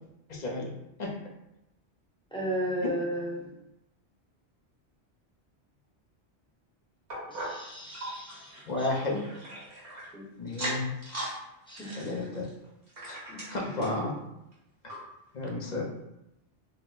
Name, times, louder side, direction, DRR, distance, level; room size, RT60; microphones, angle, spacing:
voice 1, 0.3-0.7 1.0-1.1 8.7-9.3 10.4-10.9 12.0-12.5 13.1-13.2 13.5-14.1 14.8-15.0 15.3-15.9, left 2 dB, 45° left, -1 dB, 0.7 m, -32 dB
voice 2, 2.3-3.5 7.3-8.9 10.1-10.2 11.7-12.2 13.3-13.4, equal, 5° left, -6 dB, 0.8 m, -35 dB
sound 1, 7.1-10.1 10.5-11.4 11.7-14.0 14.5-14.6 14.9-15.0 15.6-15.7, right 1 dB, 60° right, 1.4 m, -39 dB
3.9 x 2.1 x 4.0 m, 0.89 s
omnidirectional pair, 1.1 m